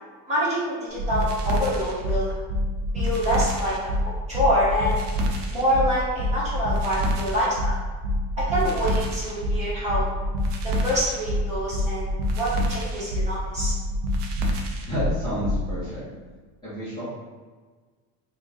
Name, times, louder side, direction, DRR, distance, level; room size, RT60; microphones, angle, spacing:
voice 1, 0.3-2.3 2.9-3.7 4.3-5.0 5.5-7.8 8.4-10.0 10.6-12.1 12.4-13.7, equal, 15° right, -9 dB, 1.0 m, -26 dB
sound 1, 1.0-15.6, equal, 55° right, 0.6 m, -26 dB
voice 2, 14.9-16.0 16.6-17.0, left 1 dB, 10° left, -14 dB, 0.7 m, -30 dB
3.8 x 2.3 x 3.6 m, 1.4 s
cardioid pair, 175°, 42 cm